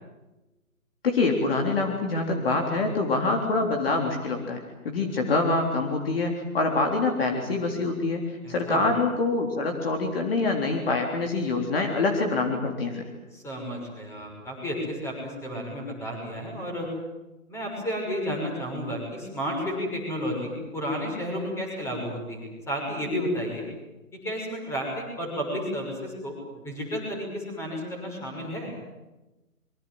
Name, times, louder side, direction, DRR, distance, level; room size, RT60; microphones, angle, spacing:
voice 1, 1.0-13.1, left 3 dB, 40° left, 2 dB, 3.7 m, -25 dB
voice 2, 8.4-8.9 13.3-16.9 17.5-23.7 24.1-28.7, equal, 5° left, 0 dB, 6.1 m, -32 dB
26.0 x 23.5 x 7.8 m, 1.0 s
figure-of-eight pair, 150°, 43 cm